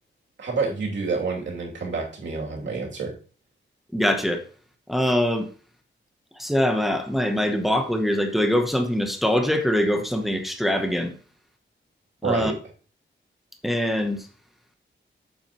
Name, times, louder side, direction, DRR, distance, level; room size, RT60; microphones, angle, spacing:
voice 1, 0.4-3.1 12.2-12.5, right 4 dB, 65° right, -1 dB, 2.7 m, -28 dB
voice 2, 3.9-4.4 4.9-5.5 6.4-11.1 12.2-12.5 13.6-14.3, equal, ahead, 5 dB, 0.9 m, -23 dB
8.4 x 7.4 x 3.0 m, 0.39 s
wide cardioid pair, 160°, 20 cm